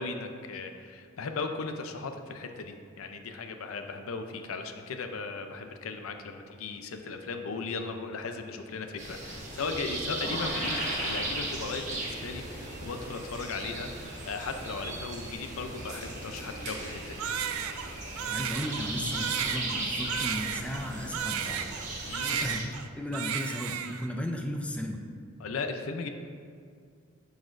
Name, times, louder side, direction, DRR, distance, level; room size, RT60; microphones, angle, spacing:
voice 1, 0.0-17.3 22.1-22.7 25.4-26.1, left 4 dB, 80° left, 6 dB, 0.5 m, -37 dB
sound 1, 9.0-22.6, right 2 dB, 35° right, 1.2 m, -37 dB
sound 2, 10.0-12.3, left 2 dB, 45° left, 0.9 m, -38 dB
Crying sobbing, 17.2-21.9 22.1-22.9 23.1-24.1, right 8 dB, 80° right, 0.4 m, -33 dB
voice 2, 18.3-21.7 22.3-25.0, equal, 5° left, 2 dB, 0.4 m, -35 dB
11.5 x 4.1 x 2.5 m, 2.2 s
head